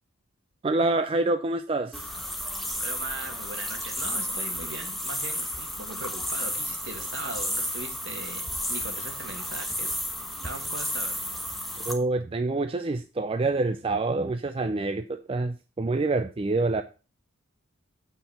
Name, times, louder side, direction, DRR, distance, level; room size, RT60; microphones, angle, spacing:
voice 1, 0.6-2.0 11.9-16.8, right 2 dB, 25° right, 0.4 m, -26 dB
sound 1, 1.9-11.9, equal, ahead, 1.1 m, -32 dB
voice 2, 2.8-10.0 10.4-11.2, right 2 dB, 60° right, 1.9 m, -39 dB
8.5 x 4.6 x 5.8 m
head